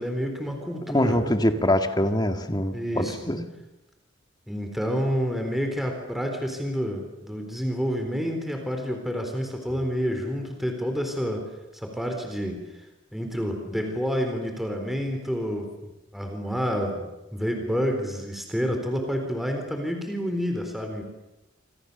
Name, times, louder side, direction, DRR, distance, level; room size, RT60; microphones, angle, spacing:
voice 1, 0.0-1.2 2.7-3.2 4.5-11.5 11.7-12.6 13.1-21.0, equal, ahead, 3 dB, 4.0 m, -29 dB
voice 2, 0.9-3.5, left 1 dB, 20° left, 6 dB, 2.0 m, -24 dB
28.5 x 26.5 x 7.0 m, 0.99 s
head